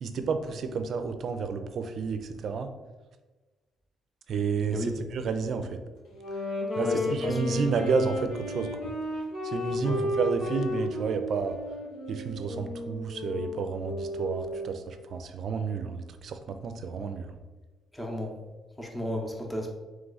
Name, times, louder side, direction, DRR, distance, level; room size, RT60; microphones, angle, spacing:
voice 1, 0.0-2.7 4.3-5.8 6.8-8.7 9.4-11.6 12.1-17.4, right 5 dB, 65° right, 8 dB, 0.5 m, -31 dB
Wind instrument woodwind instrument, 6.1-14.8, left 1 dB, 80° left, 1.2 m, -33 dB
voice 2, 6.8-7.8 9.8-10.0 17.9-18.4 18.8-19.7, left 1 dB, 5° left, 1 dB, 0.9 m, -33 dB
3.6 x 3.1 x 4.0 m, 1.2 s
cardioid pair, 90°, 0 cm